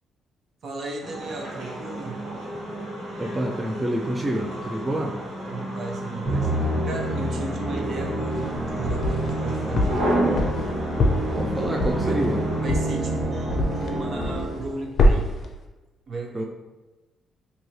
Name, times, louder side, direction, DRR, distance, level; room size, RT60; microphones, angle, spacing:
voice 1, 0.6-2.2 5.4-10.1 11.6-11.7 12.0-12.2 12.6-15.3 16.1-16.4, right 3 dB, 60° right, 1 dB, 0.6 m, -35 dB
sound 1, 1.0-12.6, equal, 85° right, 1.4 m, -32 dB
voice 2, 3.2-5.2 11.3-12.4 16.3-16.4, right 1 dB, 15° right, 1 dB, 0.3 m, -27 dB
Musical instrument, 6.2-14.7, right 1 dB, 40° right, 1.0 m, -28 dB
sound 2, 8.3-9.4 9.8-13.9 14.2-14.7 15.0-15.5, left 1 dB, 55° left, 0.4 m, -23 dB
3.1 x 2.7 x 2.7 m, 1.1 s
cardioid pair, 90°, 0 cm